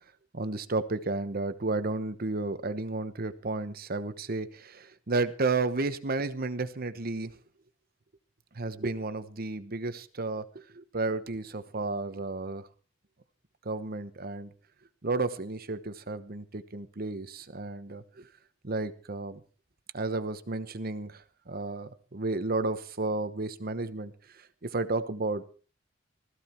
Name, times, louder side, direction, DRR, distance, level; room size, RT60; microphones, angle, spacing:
voice 1, 0.3-7.3 8.5-12.7 13.6-14.5 15.0-18.3 18.6-19.4 19.9-25.4, right 3 dB, 50° right, 12 dB, 1.0 m, -32 dB
16.5 x 14.5 x 4.4 m, 0.38 s
head